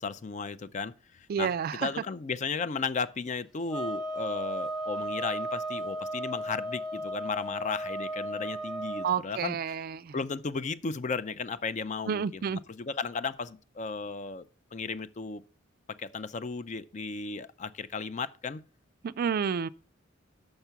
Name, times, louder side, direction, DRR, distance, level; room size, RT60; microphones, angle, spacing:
voice 1, 0.0-1.5 1.8-9.6 10.1-15.4 16.0-18.6, left 4 dB, 40° left, 0.5 m, -35 dB
voice 2, 1.3-1.9 9.0-10.1 12.1-12.6 19.0-19.7, right 7 dB, 50° right, 0.3 m, -30 dB
sound 1, 3.7-9.1, right 1 dB, ahead, 1.0 m, -35 dB
6.5 x 5.9 x 6.8 m
head